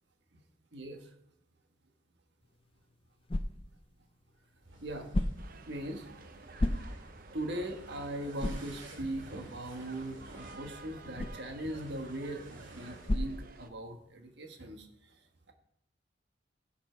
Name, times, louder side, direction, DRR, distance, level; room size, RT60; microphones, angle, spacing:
voice 1, 0.7-1.1 4.8-5.1 5.7-6.1 7.3-14.9, right 1 dB, 65° right, 4 dB, 1.6 m, -40 dB
sound 1, 2.4-14.2, left 1 dB, 30° left, 0.5 m, -39 dB
sound 2, 4.6-13.2, right 1 dB, 85° right, 2.2 m, -51 dB
sound 3, 5.4-13.7, right 4 dB, 50° right, 0.7 m, -53 dB
16.0 x 5.9 x 4.6 m, 0.73 s
head